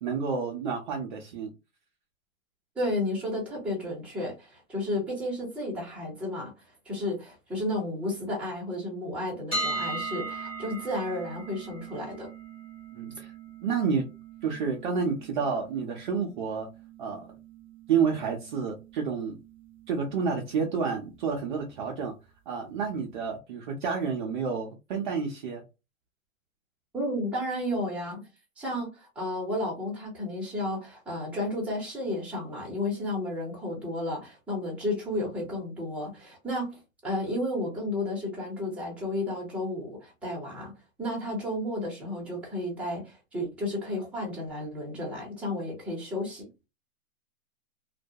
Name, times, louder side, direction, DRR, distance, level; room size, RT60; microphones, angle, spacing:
voice 1, 0.0-1.5 12.9-13.3 13.6-14.1 14.4-16.7 17.0-17.3 17.9-19.4 19.9-22.1 22.5-25.6, right 6 dB, 40° right, 0.4 m, -29 dB
voice 2, 2.8-6.5 6.9-12.3 26.9-28.2 28.6-40.7 41.0-46.5, left 1 dB, 5° right, 0.7 m, -32 dB
sound 1, 9.5-21.4, right 3 dB, 15° left, 1.0 m, -40 dB
2.2 x 2.1 x 2.6 m
hypercardioid pair, 140°, 41 cm